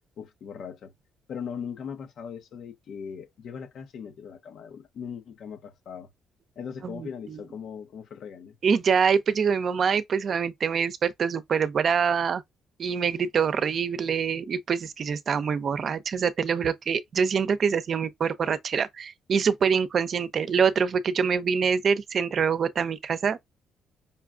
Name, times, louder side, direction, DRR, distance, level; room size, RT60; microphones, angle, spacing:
voice 1, 0.2-0.9 1.3-6.1 6.6-8.6, left 7 dB, 70° left, 0.9 m, -39 dB
voice 2, 6.8-7.4 8.6-12.4 12.8-23.4, right 6 dB, 55° right, 0.6 m, -25 dB
5.5 x 2.4 x 2.3 m
cardioid pair, 90°, 0 cm